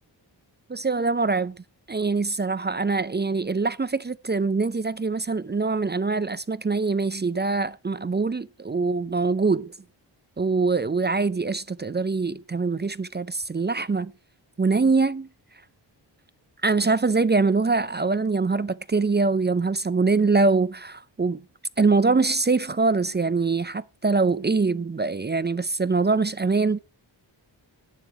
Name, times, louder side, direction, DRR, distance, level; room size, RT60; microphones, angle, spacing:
voice 1, 0.7-1.5 1.9-9.7 10.4-14.1 14.6-15.3 16.6-21.4 21.8-26.8, right 4 dB, 25° right, 0.5 m, -23 dB
11.5 x 10.0 x 4.7 m
wide cardioid pair, 105°, 45 cm